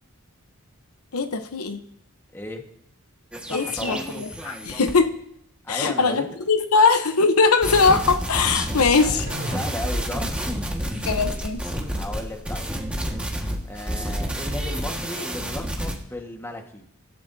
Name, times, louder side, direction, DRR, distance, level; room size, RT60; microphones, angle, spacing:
voice 1, 1.1-1.8 3.5-5.1 5.7-9.3 11.1-11.6, left 4 dB, 80° left, 8 dB, 1.0 m, -21 dB
voice 2, 2.3-2.6 3.4-4.2 5.6-6.4 9.0-11.3 12.0-12.7 13.6-16.8, left 1 dB, 10° left, 2 dB, 1.6 m, -35 dB
sound 1, 3.3-4.9 7.5-15.9, equal, 5° right, 1.7 m, -30 dB
sound 2, 9.3-12.5, equal, 80° right, 2.8 m, -34 dB
25.0 x 12.5 x 2.8 m, 0.70 s
head